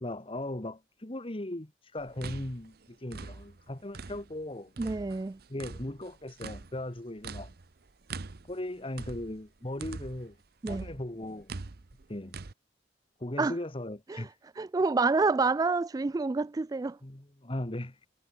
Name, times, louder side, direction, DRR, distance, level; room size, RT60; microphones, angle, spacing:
voice 1, 0.0-4.7 5.5-7.5 8.5-10.4 10.7-11.5 12.1-12.3 13.2-14.3 17.0-18.1, left 1 dB, 30° left, 1.5 m, -38 dB
sound 1, 2.0-4.4 4.8-10.3 10.7-12.5, right 3 dB, 60° right, 0.8 m, -43 dB
voice 2, 4.8-5.4 10.6-10.9 13.4-13.5 14.1-14.3 14.6-17.0, right 3 dB, 20° right, 0.3 m, -28 dB
head